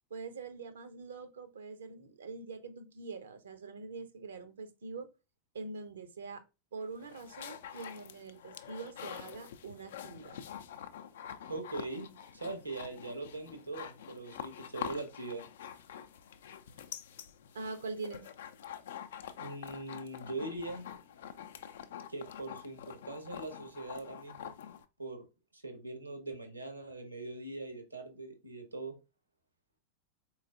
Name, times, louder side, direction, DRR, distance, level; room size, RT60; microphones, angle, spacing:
voice 1, 0.1-5.1 5.5-6.4 6.7-10.4 17.5-18.3, right 4 dB, 65° right, 0.6 m, -44 dB
sound 1, 6.8-24.8, left 9 dB, 60° left, 0.4 m, -46 dB
voice 2, 11.5-15.4 19.4-20.9 22.1-24.5 25.0-25.2 25.5-29.0, right 2 dB, 85° right, 1.0 m, -41 dB
4.1 x 3.1 x 2.5 m
figure-of-eight pair, 90°, 0 cm